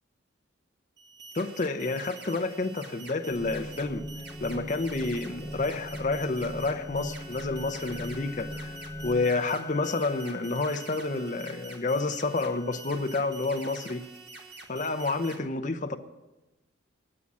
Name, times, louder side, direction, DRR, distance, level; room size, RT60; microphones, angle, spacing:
sound 1, 1.0-15.4, right 3 dB, 55° right, 1.6 m, -47 dB
voice 1, 1.3-4.0 4.4-8.8 9.0-14.0 14.7-16.0, left 3 dB, 35° left, 0.6 m, -29 dB
sound 2, 3.3-9.3, equal, 15° right, 1.8 m, -40 dB
Wind instrument woodwind instrument, 6.0-13.4, left 8 dB, 15° left, 2.1 m, -49 dB
9.8 x 8.4 x 7.4 m
head